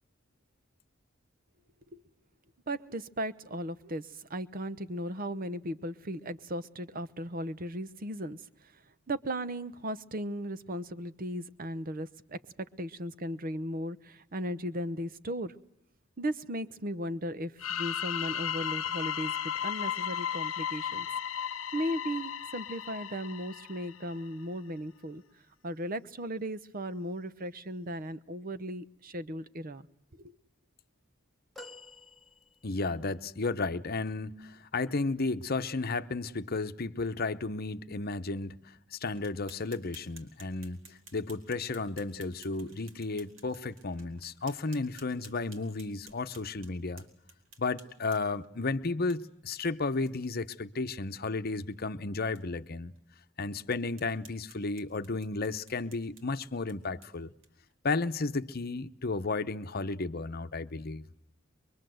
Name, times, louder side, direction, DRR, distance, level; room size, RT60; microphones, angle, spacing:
voice 1, 2.7-8.4 9.1-15.6 16.2-21.1 21.7-25.2 25.6-29.9 30.1-30.3, equal, 45° right, 0.9 m, -36 dB
sound 1, 17.6-24.3, left 9 dB, 85° left, 1.0 m, -35 dB
sound 2, 31.5-33.0 33.7-33.8, left 2 dB, ahead, 1.3 m, -50 dB
voice 2, 32.6-47.0 47.6-52.9 53.4-57.3 57.8-61.0, left 3 dB, 50° left, 0.9 m, -33 dB
sound 3, 39.1-48.5 49.1-49.2 49.6-49.7 50.1-50.2 50.5-50.6 51.0-51.2 51.7-51.8 52.4-52.5 53.0-53.1 53.7-57.7, right 3 dB, 75° right, 4.4 m, -56 dB
23.5 x 23.5 x 7.8 m
head